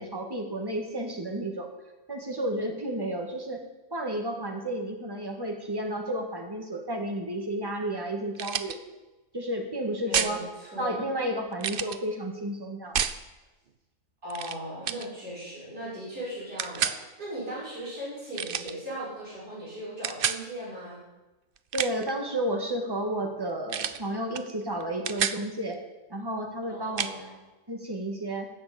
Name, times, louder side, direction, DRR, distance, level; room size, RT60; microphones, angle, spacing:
voice 1, 0.0-1.7 2.1-3.6 3.9-8.8 9.3-10.4 10.8-13.0 21.7-25.8 26.1-27.3 27.7-28.5, right 1 dB, 15° right, 3 dB, 1.8 m, -32 dB
sound 1, 8.3-8.8 10.1-10.4 11.6-12.0 12.9-13.2 14.3-14.6 14.8-15.1 16.6-17.0 18.3-18.7 20.0-20.4 21.6-22.1 23.7-24.0 24.3-24.5 24.8-25.4 27.0-27.1, right 8 dB, 60° right, 0.5 m, -29 dB
voice 2, 10.0-11.0 14.2-21.0 26.7-27.3, equal, 85° right, -9 dB, 6.9 m, -38 dB
15.0 x 6.1 x 8.6 m, 1.1 s
omnidirectional pair, 1.7 m